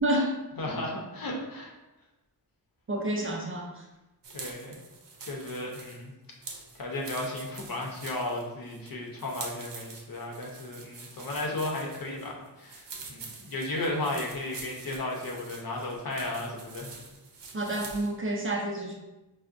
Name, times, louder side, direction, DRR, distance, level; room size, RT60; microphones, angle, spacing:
voice 1, 0.0-0.4 2.9-3.8 17.5-19.0, right 1 dB, 30° right, -1 dB, 0.5 m, -29 dB
voice 2, 0.6-1.7 4.3-4.8 5.2-6.1 6.7-17.0, left 2 dB, 55° left, -1 dB, 0.7 m, -34 dB
sound 1, 4.2-18.2, right 4 dB, 90° right, 0.6 m, -46 dB
4.4 x 2.1 x 2.5 m, 1.0 s
wide cardioid pair, 110°, 41 cm